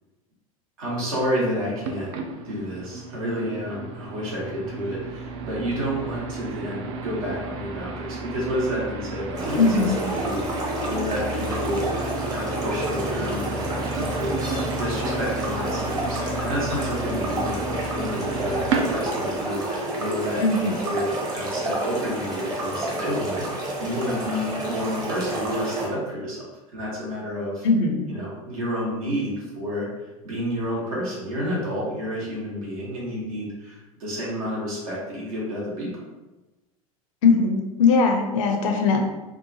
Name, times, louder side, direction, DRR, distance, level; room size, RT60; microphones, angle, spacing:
voice 1, 0.8-2.1 2.4-11.9 12.2-26.4 26.7-27.7 28.1-29.9 30.2-35.9, equal, 70° right, -5 dB, 1.2 m, -30 dB
sound 1, 1.8-19.4, right 2 dB, 55° right, 0.4 m, -32 dB
sound 2, 9.3-25.9, right 1 dB, 20° right, 0.8 m, -29 dB
voice 2, 9.6-10.0 20.4-20.7 27.6-28.1 37.2-39.0, left 4 dB, 60° left, 3 dB, 0.5 m, -20 dB
2.8 x 2.3 x 2.6 m, 1.1 s
figure-of-eight pair, 80°, 18 cm